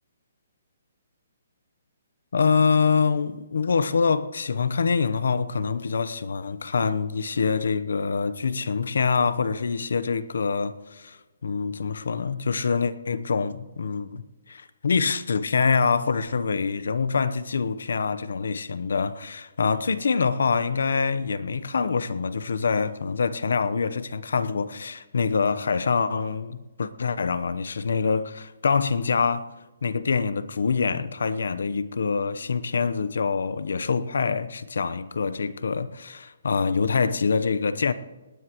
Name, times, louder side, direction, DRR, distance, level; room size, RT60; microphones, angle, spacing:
voice 1, 2.3-14.2 14.5-29.5 29.8-37.9, left 5 dB, 80° left, 0.9 m, -25 dB
19.5 x 19.0 x 3.1 m
hypercardioid pair, 170°, 0 cm